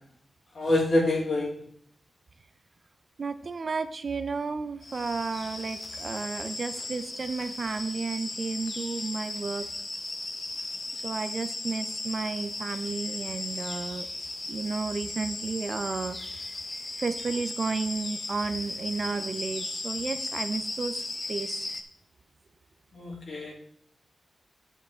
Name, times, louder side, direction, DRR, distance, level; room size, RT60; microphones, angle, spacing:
voice 1, 0.5-1.6 22.9-23.5, left 1 dB, 50° left, -3 dB, 3.4 m, -26 dB
voice 2, 3.2-9.7 11.0-14.1 14.5-16.2 17.0-21.7, right 4 dB, 40° right, 9 dB, 0.6 m, -32 dB
sound 1, 4.8-21.8, left 2 dB, 30° left, 1.0 m, -36 dB
10.0 x 8.2 x 3.7 m, 0.64 s
wide cardioid pair, 170°, 0 cm